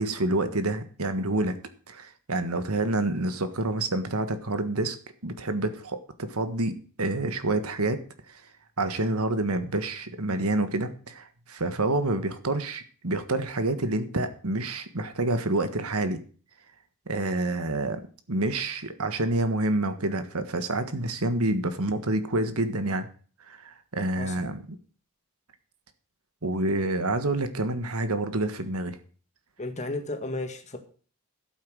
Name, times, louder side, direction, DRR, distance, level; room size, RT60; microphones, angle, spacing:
voice 1, 0.0-4.9 5.2-8.0 8.3-8.4 8.8-16.2 17.1-18.0 18.3-23.1 23.5-24.6 26.4-29.0, right 2 dB, 70° right, 10 dB, 1.5 m, -28 dB
voice 2, 24.2-24.6 29.6-30.8, left 2 dB, 30° left, 5 dB, 1.9 m, -34 dB
12.0 x 8.7 x 6.3 m, 0.42 s
head